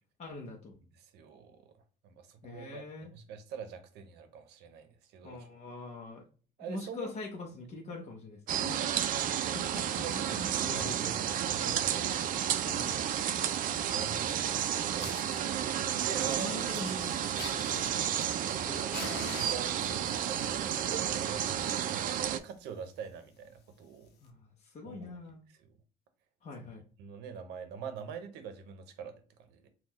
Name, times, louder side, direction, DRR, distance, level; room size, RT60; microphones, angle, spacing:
voice 1, 0.2-0.8 2.4-3.1 5.2-6.2 6.6-8.6 9.5-11.1 12.6-13.0 13.7-13.9 15.2-15.3 16.1-17.9 18.6-18.8 24.2-25.4 26.4-26.8, left 2 dB, 40° left, 0.8 m, -43 dB
voice 2, 1.0-1.7 2.0-5.5 6.6-7.1 8.5-9.5 10.0-10.1 10.6-12.6 13.4-15.4 15.8-16.8 18.4-18.9 19.3-24.1 24.8-25.2 25.6-25.8 26.6-26.7 27.0-29.7, right 6 dB, 85° right, 0.7 m, -45 dB
sound 1, 8.5-22.4, right 10 dB, 55° right, 0.4 m, -32 dB
Fire, 14.5-14.6 15.0-15.4 16.0-18.6 18.9-20.1 20.9-21.2 21.5-21.6 22.0-22.1 22.3-22.6 23.1-23.2 24.1-24.2, left 6 dB, 80° left, 0.8 m, -45 dB
3.7 x 2.3 x 2.9 m
cardioid pair, 110°, 17 cm